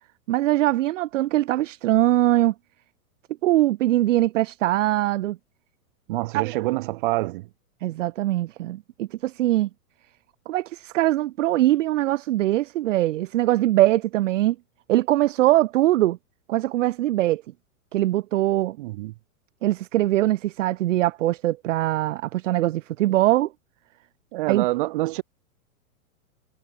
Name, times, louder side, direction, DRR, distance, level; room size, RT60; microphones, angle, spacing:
voice 1, 0.3-2.5 3.4-5.4 6.3-6.6 7.8-9.7 10.5-14.6 14.9-16.2 16.5-17.4 17.9-18.8 19.6-23.5 24.5-24.7, right 15 dB, 60° right, 0.5 m, -22 dB
voice 2, 6.1-7.5 18.8-19.1 24.3-25.2, right 20 dB, 35° right, 2.1 m, -26 dB
supercardioid pair, 175°, 43 cm